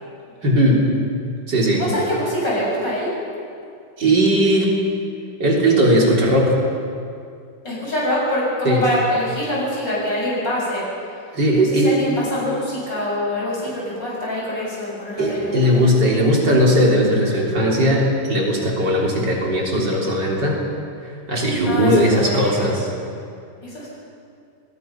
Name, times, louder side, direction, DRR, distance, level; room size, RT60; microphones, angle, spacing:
voice 1, 0.4-0.9 1.5-1.8 4.0-4.8 5.4-6.6 8.6-8.8 11.3-11.9 15.2-20.6 21.3-22.9, equal, 60° right, -2 dB, 4.1 m, -18 dB
voice 2, 1.7-3.1 7.6-10.8 11.6-15.6 21.7-22.7 23.6-23.9, left 1 dB, 60° left, -6 dB, 8.1 m, -24 dB
23.5 x 19.5 x 5.8 m, 2.4 s
omnidirectional pair, 2.2 m